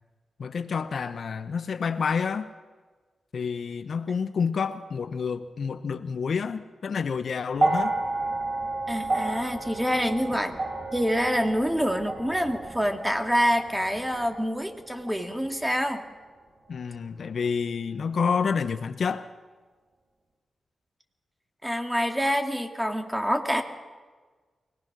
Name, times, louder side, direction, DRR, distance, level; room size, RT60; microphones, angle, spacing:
voice 1, 0.4-2.5 3.3-8.0 16.7-19.3, left 6 dB, 70° left, 11 dB, 0.9 m, -29 dB
sound 1, 7.5-15.9 16.9-17.0, right 2 dB, 40° right, 4.7 m, -32 dB
voice 2, 8.9-10.6 10.9-16.0 21.6-23.6, equal, 5° right, 5 dB, 2.2 m, -26 dB
24.0 x 18.5 x 6.1 m, 1.4 s
cardioid pair, 70°, 0 cm